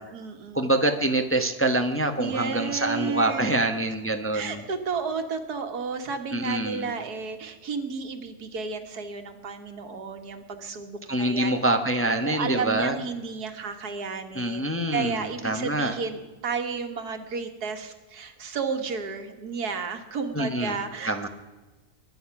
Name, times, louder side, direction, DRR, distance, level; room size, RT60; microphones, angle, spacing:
voice 1, 0.0-0.6 2.2-3.6 4.3-11.5 12.2-21.3, right 5 dB, 85° right, 6 dB, 2.1 m, -32 dB
voice 2, 0.5-4.6 6.3-6.9 11.1-13.0 14.3-15.9 20.3-20.8 21.0-21.3, right 1 dB, 10° left, 6 dB, 0.8 m, -25 dB
22.5 x 10.5 x 5.9 m, 1.2 s
omnidirectional pair, 1.6 m